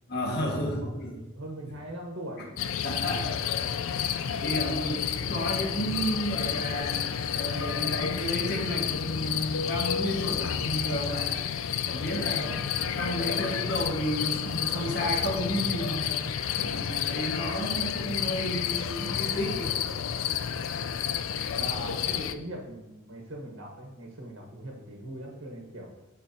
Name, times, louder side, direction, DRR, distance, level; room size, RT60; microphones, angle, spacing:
voice 1, 0.1-1.2 2.4-2.5 2.8-3.3 3.8-5.0 5.3-6.9 7.3-11.4 11.8-12.4 12.9-16.1 16.6-19.7, equal, 55° left, -1 dB, 1.6 m, -32 dB
voice 2, 1.3-2.7 3.2-3.3 4.7-5.1 6.8-6.9 12.2-12.6 21.5-25.9, right 1 dB, 65° right, -1 dB, 1.2 m, -41 dB
sound 1, 2.6-22.3, left 8 dB, 80° left, 0.4 m, -30 dB
12.5 x 4.4 x 2.8 m, 1.0 s
head